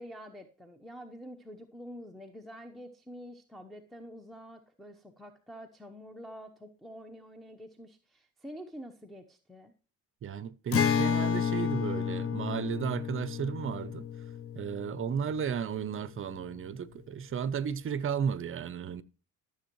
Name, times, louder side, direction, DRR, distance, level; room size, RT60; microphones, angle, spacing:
voice 1, 0.0-9.7, equal, ahead, 0.9 m, -47 dB
voice 2, 10.2-14.1 14.5-19.0, right 7 dB, 40° right, 0.6 m, -34 dB
Acoustic guitar, 10.7-16.2, left 7 dB, 40° left, 0.7 m, -31 dB
13.0 x 7.1 x 3.0 m
cardioid pair, 120°, 34 cm